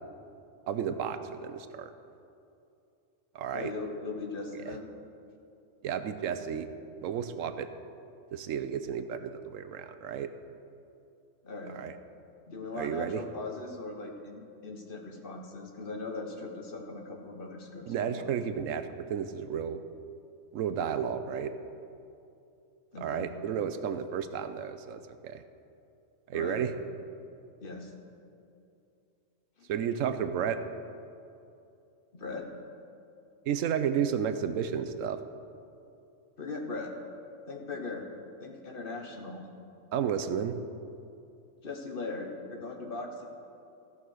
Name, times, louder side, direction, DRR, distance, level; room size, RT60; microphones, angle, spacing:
voice 1, 0.7-1.9 3.3-3.7 5.8-6.7 7.0-7.7 8.3-10.3 11.7-11.9 12.7-13.2 17.9-19.8 20.5-21.5 23.0-25.4 26.3-26.7 29.7-30.6 33.5-35.2 39.9-40.5, right 8 dB, 80° right, 10 dB, 1.0 m, -32 dB
voice 2, 3.5-4.9 11.4-11.8 12.4-18.4 22.9-23.3 26.3-26.7 27.6-27.9 32.1-32.5 36.4-36.9 37.5-38.1 38.4-39.5 41.6-43.3, left 3 dB, 45° left, 2 dB, 1.2 m, -39 dB
15.0 x 5.6 x 6.4 m, 2.7 s
omnidirectional pair, 1.4 m